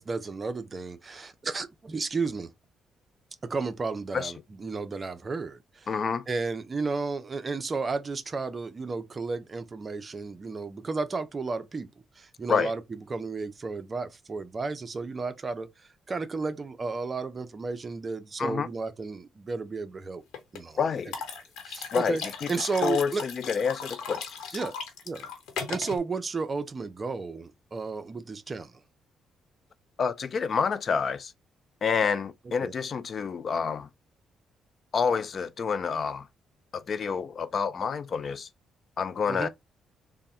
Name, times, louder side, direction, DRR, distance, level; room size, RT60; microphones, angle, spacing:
voice 1, 0.0-2.5 3.4-5.9 6.3-11.9 12.2-20.2 20.5-20.8 21.6-22.2 22.5-23.2 24.5-24.7 25.1-25.3 25.7-28.7 32.6-32.7 39.3-39.5, right 4 dB, 35° right, 0.5 m, -33 dB
voice 2, 5.9-6.2 12.5-12.7 18.4-18.7 20.8-21.1 21.9-22.5 22.8-24.6 30.0-31.3 31.8-33.9 34.9-36.3 36.7-38.5 39.0-39.5, left 6 dB, 45° left, 0.4 m, -28 dB
sound 1, 20.3-20.6 21.1-26.0, left 6 dB, 85° left, 0.9 m, -37 dB
3.4 x 2.1 x 4.2 m
cardioid pair, 90°, 0 cm